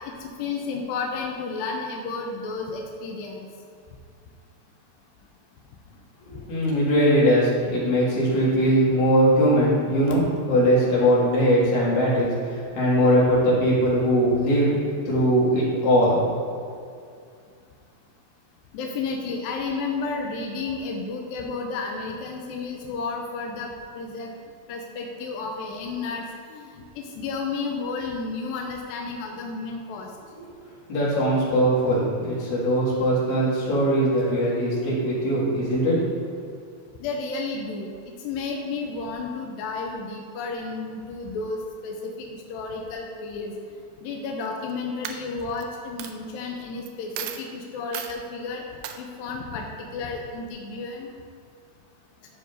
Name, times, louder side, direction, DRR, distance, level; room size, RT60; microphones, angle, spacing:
voice 1, 0.0-3.5 18.7-24.3 24.7-30.1 37.0-43.5 44.0-48.6 49.0-51.1, left 4 dB, 80° left, 1 dB, 2.1 m, -32 dB
voice 2, 6.3-10.2 10.5-14.8 15.1-16.3 30.4-30.6 30.9-36.0, equal, 65° left, -8 dB, 3.7 m, -21 dB
Coin (dropping), 44.4-44.7 45.0-45.6 46.0-46.1 46.9-47.0 47.2-47.5 47.9-48.2 48.8-49.0, right 10 dB, 85° right, 2.6 m, -34 dB
12.0 x 6.6 x 2.7 m, 2.3 s
omnidirectional pair, 4.6 m